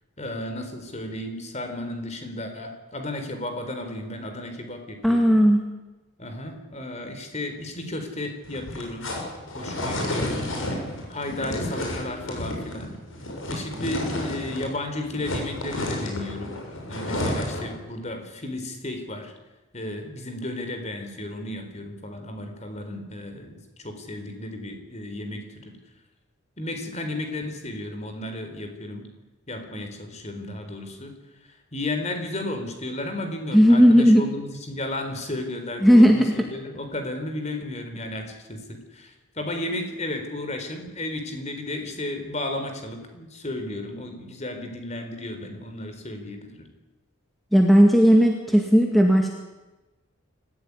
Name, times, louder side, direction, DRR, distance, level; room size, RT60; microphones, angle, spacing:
voice 1, 0.2-5.3 6.2-9.1 9.5-10.4 11.1-12.9 13.5-16.6 16.8-19.3 19.7-25.8 26.6-29.1 29.5-31.1 31.7-46.7, left 1 dB, 30° left, 6 dB, 4.0 m, -33 dB
voice 2, 5.0-5.7 33.5-34.2 35.8-36.5 47.5-49.3, equal, ahead, 1 dB, 2.1 m, -16 dB
sound 1, 8.4-14.8 15.0-17.8, left 1 dB, 65° left, 7.0 m, -31 dB
26.0 x 15.5 x 9.9 m, 1.1 s
head